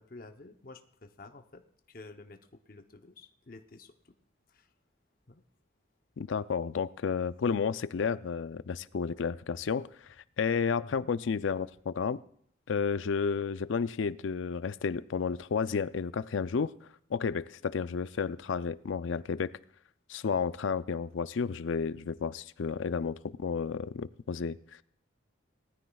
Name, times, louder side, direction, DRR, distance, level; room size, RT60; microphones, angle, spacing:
voice 1, 0.0-4.1 4.5-4.7 5.3-5.4 10.8-11.1, left 2 dB, 45° left, 6 dB, 0.8 m, -51 dB
voice 2, 6.2-9.9 10.4-12.2 12.7-16.7 17.1-19.5 20.1-24.6, left 5 dB, 80° left, 15 dB, 0.4 m, -31 dB
19.5 x 13.5 x 2.3 m, 0.67 s
head